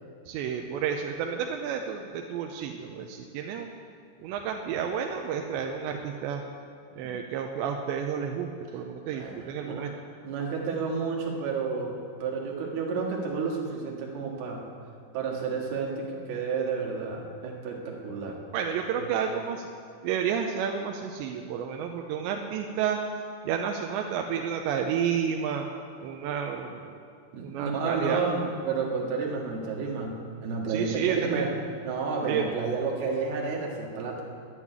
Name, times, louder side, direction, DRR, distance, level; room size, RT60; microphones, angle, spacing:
voice 1, 0.3-3.7 4.2-6.4 7.0-9.9 18.5-19.7 20.0-23.0 23.4-25.7 26.0-26.9 27.4-28.2 30.7-31.5 32.3-32.4, right 7 dB, 85° right, 3 dB, 2.8 m, -31 dB
voice 2, 9.0-9.9 10.2-14.6 15.1-18.4 19.0-19.1 27.3-31.5 31.8-34.2, right 4 dB, 65° right, -1 dB, 3.5 m, -31 dB
11.5 x 9.1 x 9.7 m, 2.3 s
omnidirectional pair, 5.3 m